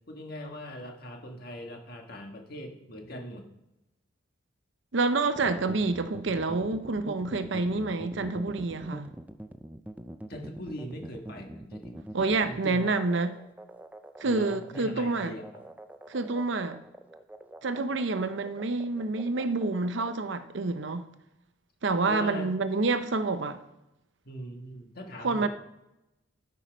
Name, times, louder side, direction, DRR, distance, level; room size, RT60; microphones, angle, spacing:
voice 1, 0.1-3.5 10.3-12.0 12.4-12.8 14.2-15.6 22.1-22.5 24.2-25.5, equal, 50° left, 1.6 m, -41 dB
voice 2, 4.9-9.1 12.1-13.4 14.2-15.3 16.1-16.8 17.6-21.1 21.8-23.6 25.2-25.5, right 3 dB, 65° right, 0.7 m, -28 dB
sound 1, 5.3-20.1, right 1 dB, 10° right, 0.4 m, -44 dB
12.5 x 5.6 x 5.1 m
head